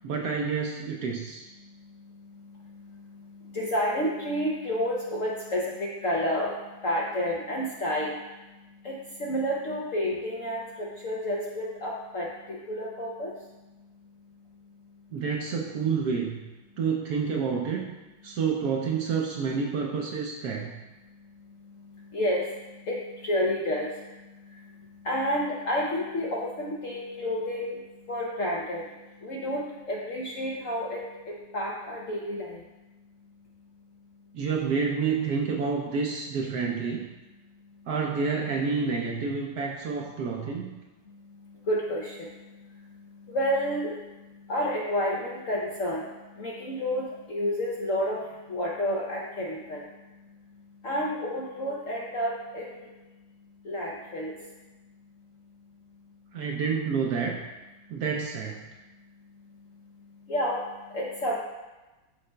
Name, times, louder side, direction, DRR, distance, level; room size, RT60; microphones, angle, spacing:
voice 1, 0.0-1.5 15.1-16.5 16.8-17.9 18.2-20.7 34.3-37.1 37.9-40.8 56.3-57.4 57.9-58.6, right 5 dB, 70° right, 0 dB, 1.0 m, -29 dB
voice 2, 3.5-6.5 6.8-8.1 8.8-13.3 22.1-22.5 22.9-23.9 25.0-27.8 28.1-28.9 29.2-32.5 41.7-42.2 43.3-44.0 44.5-46.0 46.4-48.2 48.5-49.8 50.8-52.8 53.6-54.3 60.3-60.6 60.9-61.4, equal, 60° left, -3 dB, 0.8 m, -30 dB
11.5 x 4.2 x 2.2 m, 1.1 s
omnidirectional pair, 2.1 m